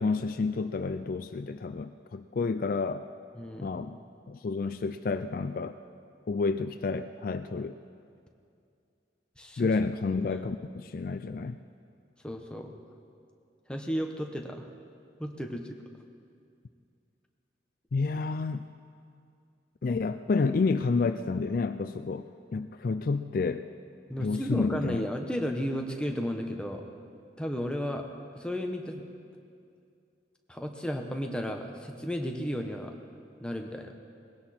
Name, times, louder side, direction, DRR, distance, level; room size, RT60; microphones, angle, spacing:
voice 1, 0.0-3.0 3.6-4.0 4.3-5.8 6.3-7.7 9.6-11.6 17.9-18.7 19.8-23.6 24.2-25.0, left 4 dB, 50° left, 10 dB, 0.4 m, -30 dB
voice 2, 3.3-3.7 9.4-9.7 10.1-10.4 12.2-12.7 13.7-14.7 15.2-15.8 24.1-26.8 27.4-28.0 28.3-29.1 30.5-32.9 33.4-33.9, equal, 5° left, 3 dB, 1.0 m, -33 dB
20.5 x 16.5 x 4.3 m, 2.4 s
head